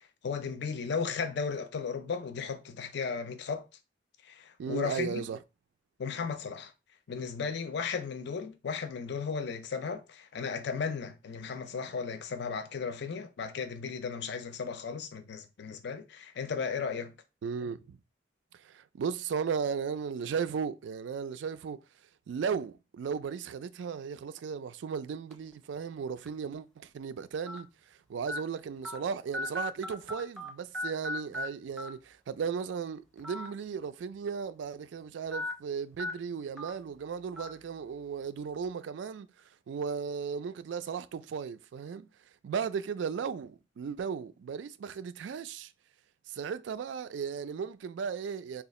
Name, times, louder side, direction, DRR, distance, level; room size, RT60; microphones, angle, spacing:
voice 1, 0.2-3.7 4.2-5.2 6.0-6.7 7.1-17.1, left 5 dB, 65° left, 0.4 m, -35 dB
voice 2, 4.6-5.4 17.4-18.0 18.5-21.8 22.3-27.7 28.1-39.3 39.7-42.1 42.4-45.7 46.3-48.6, right 6 dB, 75° right, 0.3 m, -36 dB
sound 1, 25.3-25.5 26.3-26.4 27.5-27.6 28.3-28.4 28.8-29.0 29.3-30.5 30.7-31.5 31.8-31.9 33.2-33.5 33.8-33.9 35.3-35.5 36.0-36.1 36.6-36.7 37.4-37.5, left 2 dB, 5° left, 0.6 m, -36 dB
2.7 x 2.3 x 4.1 m
head